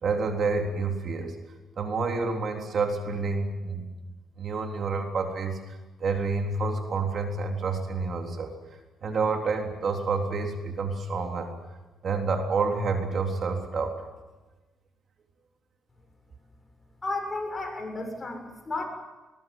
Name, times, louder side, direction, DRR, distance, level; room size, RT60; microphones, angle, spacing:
voice 1, 0.0-1.4 1.8-3.8 4.4-5.6 6.0-8.5 9.0-11.5 12.0-14.0, right 4 dB, 50° right, 3 dB, 3.6 m, -28 dB
voice 2, 17.0-18.9, left 2 dB, 25° left, 3 dB, 7.3 m, -33 dB
21.0 x 20.5 x 9.3 m, 1.2 s
cardioid pair, 90°, 0 cm